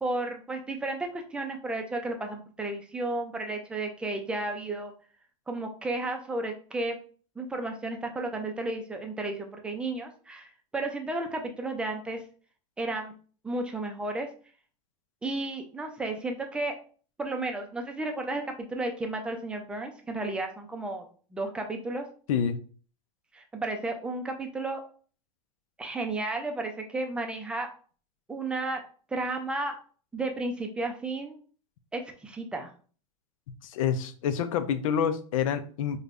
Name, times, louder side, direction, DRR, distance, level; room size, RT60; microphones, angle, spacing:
voice 1, 0.0-4.9 5.5-7.0 7.4-12.2 12.8-13.1 13.4-14.3 15.2-16.8 17.2-18.4 18.7-21.0 21.3-22.1 23.3-24.8 25.8-27.7 28.3-28.8 29.1-29.8 30.1-31.4 31.9-32.7, right 2 dB, 5° right, 4 dB, 0.4 m, -33 dB
voice 2, 33.6-36.0, left 8 dB, 85° left, 10 dB, 0.5 m, -27 dB
5.0 x 2.2 x 2.5 m, 0.41 s
supercardioid pair, 150°, 17 cm